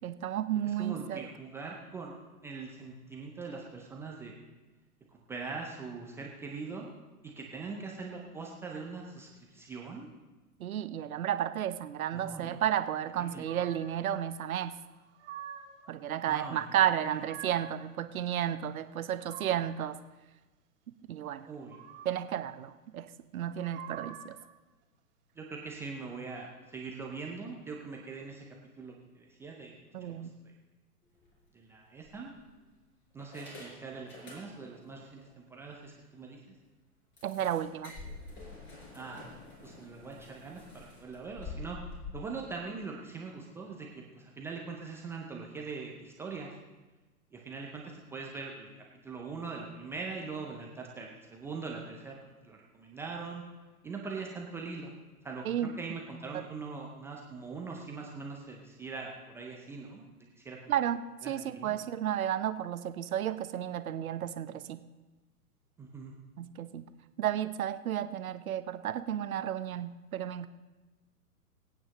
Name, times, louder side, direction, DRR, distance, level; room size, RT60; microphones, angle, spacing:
voice 1, 0.0-1.3 10.6-14.7 15.9-20.0 21.1-21.5 22.0-24.4 29.9-30.3 37.2-37.9 55.4-55.7 56.3-56.4 60.7-64.8 66.4-66.8 67.2-70.5, right 10 dB, 65° right, 12 dB, 0.8 m, -32 dB
voice 2, 0.7-2.2 2.4-4.3 5.1-6.9 7.2-10.1 12.1-12.6 13.2-13.5 16.3-16.6 17.1-17.2 21.5-21.9 25.4-28.5 28.8-29.8 30.0-30.3 31.5-32.4 33.1-36.4 38.9-39.4 39.6-41.8 42.1-46.5 47.3-48.7 49.0-52.2 52.4-53.4 53.8-54.9 55.2-55.4 55.8-60.6 61.2-61.8 65.8-66.2, right 4 dB, 5° right, -2 dB, 0.4 m, -42 dB
sound 1, 13.4-14.0 14.9-15.9 16.8-17.8 18.8-19.9 21.4-22.3 23.4-24.5, right 9 dB, 45° right, 1.7 m, -48 dB
sound 2, 31.1-31.4 32.0-32.7 33.2-34.9 35.2-35.3 35.7-35.8 36.2-36.3 37.2-42.1, left 3 dB, 25° left, 4.3 m, -47 dB
23.0 x 8.8 x 3.0 m, 1.2 s
hypercardioid pair, 115°, 46 cm